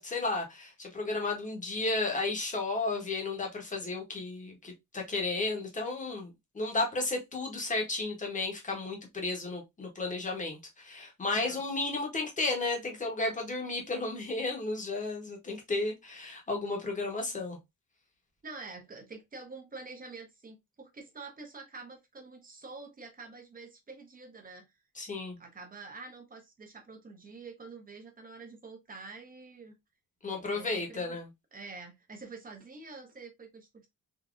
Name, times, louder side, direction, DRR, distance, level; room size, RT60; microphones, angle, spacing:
voice 1, 0.0-17.6 25.0-25.4 30.2-31.3, left 3 dB, 20° left, 1.0 m, -33 dB
voice 2, 11.3-11.6 18.4-24.7 25.4-29.7 30.5-31.2 31.5-33.9, right 4 dB, 25° right, 0.8 m, -47 dB
3.7 x 2.7 x 2.4 m
wide cardioid pair, 175°, 36 cm